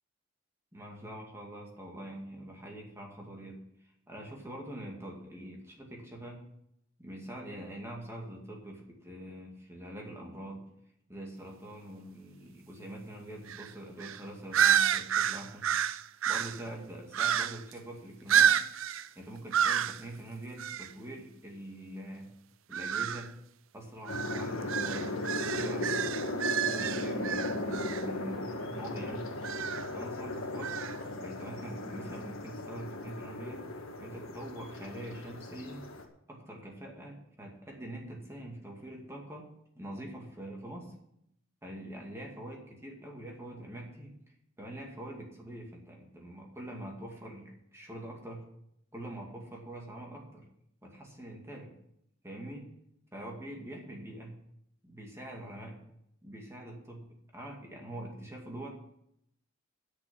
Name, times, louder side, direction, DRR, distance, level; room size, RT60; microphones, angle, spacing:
voice 1, 0.7-6.4 7.0-10.7 11.1-15.7 16.3-18.6 19.2-22.3 22.7-23.3 23.7-29.3 29.9-30.8 31.2-33.6 34.0-35.9 36.3-39.5 39.7-40.9 41.6-44.1 44.6-48.4 48.9-50.4 50.8-51.7 52.2-52.7 53.1-54.4 54.8-55.8 56.2-58.7, right 1 dB, 15° right, -1 dB, 2.4 m, -44 dB
sound 1, 13.5-13.7 14.0-14.2 14.5-16.6 17.1-17.7 18.3-19.1 19.5-20.0 20.6-20.9 22.7-23.3 24.1-28.0 29.4-29.9 30.6-31.0, right 9 dB, 75° right, 0.5 m, -29 dB
sound 2, 24.1-36.0, left 2 dB, 85° left, 1.7 m, -37 dB
9.8 x 6.9 x 9.0 m, 0.75 s
head